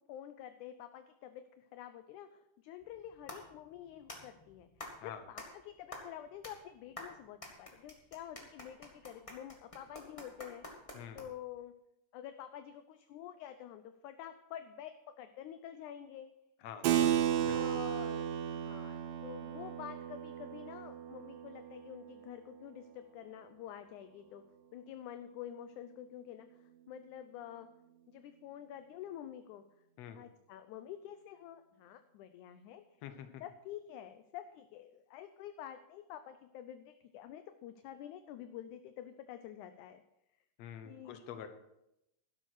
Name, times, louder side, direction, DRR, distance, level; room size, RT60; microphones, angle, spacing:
voice 1, 0.0-4.7 5.0-10.6 11.2-11.7 12.1-16.3 17.0-17.1 17.5-24.4 24.7-27.7 28.1-29.6 30.2-32.8 33.4-40.0 40.9-41.2, left 10 dB, 75° left, 9 dB, 1.9 m, -48 dB
sound 1, 2.8-11.6, left 1 dB, 20° left, 1.0 m, -50 dB
voice 2, 16.6-17.1 17.4-17.8 30.0-30.2 33.0-33.4 40.6-41.5, left 9 dB, 60° left, 8 dB, 2.0 m, -47 dB
Keyboard (musical), 16.8-22.9, right 10 dB, 85° right, 2.5 m, -34 dB
12.0 x 11.5 x 4.7 m, 0.85 s
omnidirectional pair, 3.9 m